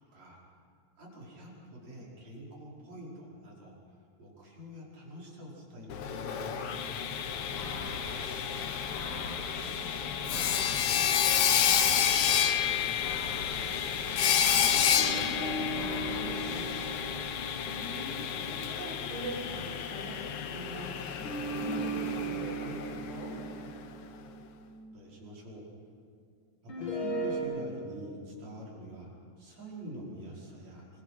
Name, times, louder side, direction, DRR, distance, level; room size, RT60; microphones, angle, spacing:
voice 1, 1.0-3.8 4.2-8.8 9.1-12.9 24.9-25.6 26.6-29.1 29.4-31.0, right 1 dB, 65° right, -4 dB, 6.5 m, -46 dB
Sawing, 5.9-23.7, left 8 dB, 60° left, 1.8 m, -30 dB
sound 1, 7.2-17.1, left 2 dB, 85° left, 4.7 m, -44 dB
voice 2, 8.6-9.3 13.5-16.7 17.6-20.2 20.4-20.9 21.5-23.3, right 1 dB, 45° right, -2 dB, 7.4 m, -43 dB
sound 2, 15.0-19.5 21.2-25.4 26.7-27.4, right 2 dB, 40° left, 3.4 m, -38 dB
27.0 x 23.5 x 5.9 m, 2.3 s
omnidirectional pair, 3.4 m